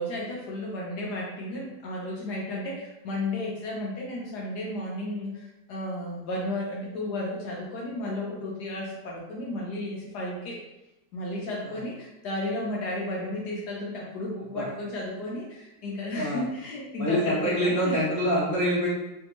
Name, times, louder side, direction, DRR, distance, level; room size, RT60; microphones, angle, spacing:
voice 1, 0.0-10.6 11.1-18.0, left 1 dB, 70° left, -3 dB, 1.1 m, -33 dB
voice 2, 17.0-18.9, equal, 30° right, -10 dB, 0.6 m, -25 dB
3.3 x 2.6 x 2.9 m, 0.94 s
omnidirectional pair, 2.1 m